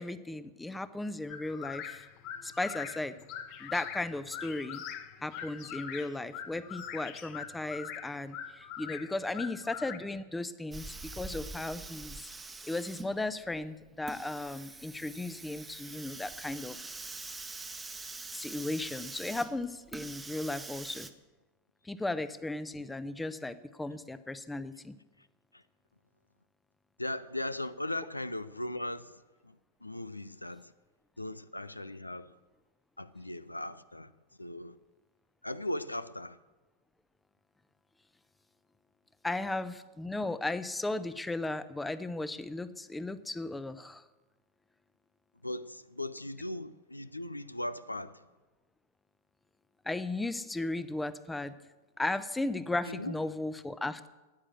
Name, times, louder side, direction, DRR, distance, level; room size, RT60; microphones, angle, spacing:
voice 1, 0.0-2.1 2.4-3.2 3.6-4.8 5.2-12.3 12.7-16.9 18.3-21.1 21.8-25.0 39.2-44.0 49.8-51.5 52.0-54.1, left 2 dB, 10° left, 0.7 m, -36 dB
sound 1, 1.3-10.0, left 8 dB, 45° left, 1.5 m, -43 dB
Hiss, 10.7-21.1, right 3 dB, 10° right, 1.1 m, -44 dB
voice 2, 27.0-30.7 31.2-32.3 33.0-34.1 34.4-34.8 35.4-36.4 45.4-48.2 52.8-53.2, left 1 dB, 85° left, 0.5 m, -38 dB
14.5 x 9.9 x 7.7 m
figure-of-eight pair, 90°, 0 cm